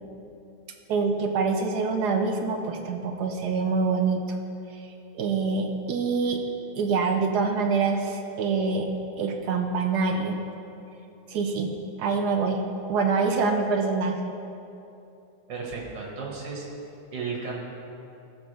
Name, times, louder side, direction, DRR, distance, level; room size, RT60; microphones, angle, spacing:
voice 1, 0.9-4.4 4.7-6.4 6.8-8.9 9.2-10.4 11.3-11.7 12.0-12.6 12.9-14.2, right 4 dB, 70° right, 3 dB, 1.2 m, -25 dB
voice 2, 15.5-16.7 17.1-17.7, right 4 dB, 85° right, -2 dB, 2.4 m, -34 dB
15.5 x 7.2 x 3.4 m, 2.8 s
omnidirectional pair, 1.9 m